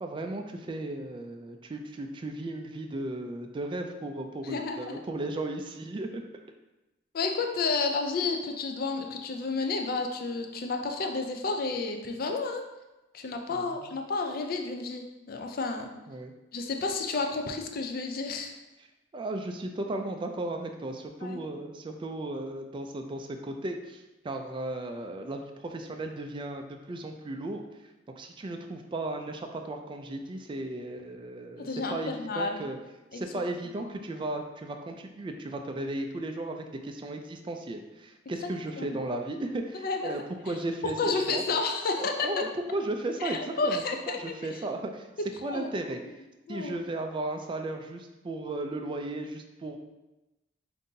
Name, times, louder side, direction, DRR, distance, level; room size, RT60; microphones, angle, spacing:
voice 1, 0.0-6.2 13.5-13.9 16.1-16.3 19.1-27.6 28.2-32.8 33.1-41.4 42.0-45.1 45.4-46.0 46.5-49.8, right 2 dB, 25° right, 4 dB, 0.3 m, -35 dB
voice 2, 4.4-5.0 7.1-12.6 13.1-15.9 16.5-18.5 21.2-21.4 31.6-32.6 33.1-33.2 38.8-39.0 39.8-40.2 40.8-42.3 43.2-44.2 45.2-46.0 46.5-46.7, left 3 dB, 50° left, 4 dB, 0.4 m, -31 dB
5.2 x 2.6 x 2.7 m, 1.0 s
head